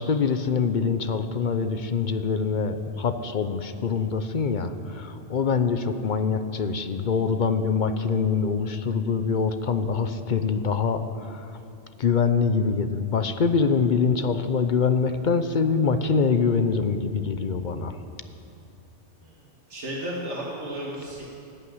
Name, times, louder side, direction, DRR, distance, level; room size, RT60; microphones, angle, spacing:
voice 1, 0.0-11.5 12.0-18.0, left 5 dB, 50° left, 10 dB, 0.8 m, -24 dB
voice 2, 19.7-21.3, right 1 dB, 85° right, -4 dB, 2.0 m, -33 dB
14.0 x 8.9 x 9.5 m, 2.7 s
omnidirectional pair, 1.2 m